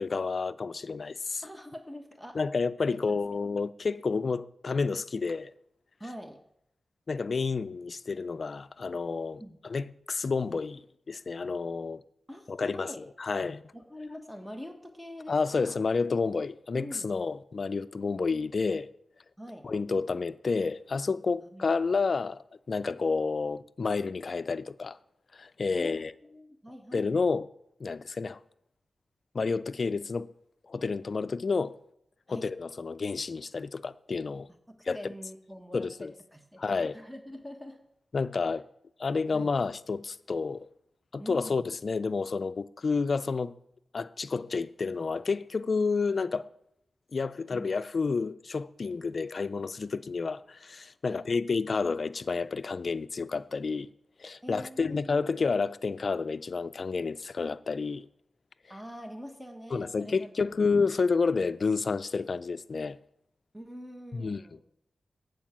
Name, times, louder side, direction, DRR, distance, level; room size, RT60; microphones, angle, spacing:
voice 1, 0.0-1.4 2.3-5.5 7.1-10.8 11.1-12.0 12.5-13.6 15.3-18.9 19.6-22.4 22.7-25.0 25.3-26.1 26.9-27.5 27.8-28.4 29.3-30.3 30.7-31.7 32.3-34.5 34.9-35.0 35.7-36.1 36.6-37.0 38.1-38.7 39.0-40.7 41.1-43.5 43.9-46.5 47.1-53.9 54.2-58.1 59.7-63.0 64.1-64.6, left 4 dB, 60° left, 0.3 m, -30 dB
voice 2, 1.4-2.4 2.9-3.1 6.0-6.4 9.4-9.6 12.3-13.0 13.7-15.7 16.7-17.2 19.4-19.7 21.4-21.6 25.7-27.1 32.3-32.5 34.7-36.6 36.9-37.8 39.3-39.5 41.2-41.6 47.5-47.7 51.0-51.2 54.4-55.5 58.7-60.3 63.5-64.6, equal, 5° right, 1.3 m, -44 dB
9.0 x 4.7 x 7.3 m
cardioid pair, 40°, 0 cm